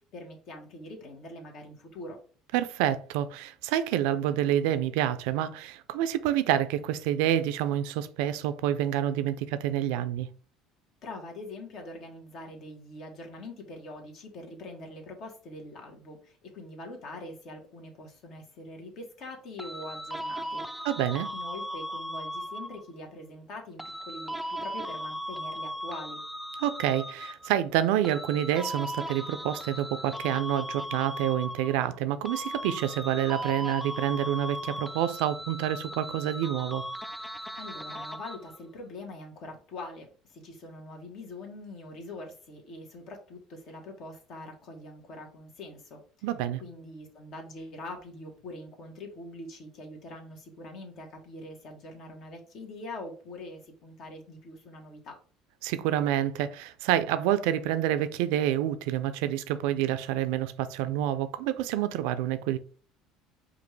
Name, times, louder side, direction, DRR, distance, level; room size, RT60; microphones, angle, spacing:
voice 1, 0.1-2.2 11.0-20.7 21.3-26.2 37.5-46.0 46.6-55.2, left 2 dB, 60° left, 1.3 m, -43 dB
voice 2, 2.5-10.3 20.8-21.3 26.6-36.8 46.2-46.6 55.6-62.6, right 11 dB, 75° right, 0.4 m, -28 dB
sound 1, 19.6-22.9 23.8-27.6 28.0-32.0 32.2-38.6, equal, 5° left, 0.4 m, -37 dB
5.1 x 2.5 x 3.1 m
hypercardioid pair, 80°, 0 cm